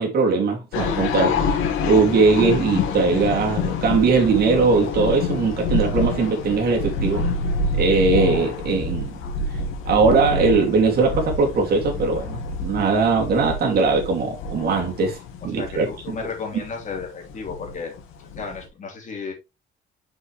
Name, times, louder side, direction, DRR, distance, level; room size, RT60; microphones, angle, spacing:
voice 1, 0.0-1.6 1.9-7.2 7.7-9.2 9.9-15.2 15.4-16.1, right 4 dB, 50° right, 2.7 m, -20 dB
sound 1, 0.7-18.7, left 3 dB, 85° left, 1.9 m, -27 dB
voice 2, 15.5-17.9 18.3-19.3, left 5 dB, 40° left, 3.1 m, -33 dB
6.3 x 5.9 x 3.3 m
cardioid pair, 135°, 20 cm